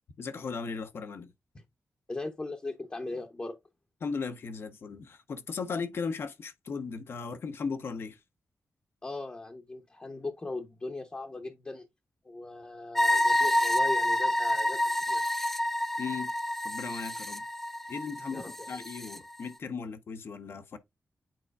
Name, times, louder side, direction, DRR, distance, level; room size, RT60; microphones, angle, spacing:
voice 1, 0.2-1.3 4.0-8.2 16.0-16.3 16.6-17.4 17.9-20.8, left 5 dB, 65° left, 0.9 m, -37 dB
voice 2, 2.1-3.6 9.0-11.9 12.2-15.2 18.3-18.9, left 2 dB, 25° left, 0.8 m, -39 dB
sound 1, 12.9-19.2, left 1 dB, 5° left, 0.5 m, -28 dB
9.0 x 4.4 x 2.4 m
wide cardioid pair, 105°, 4 cm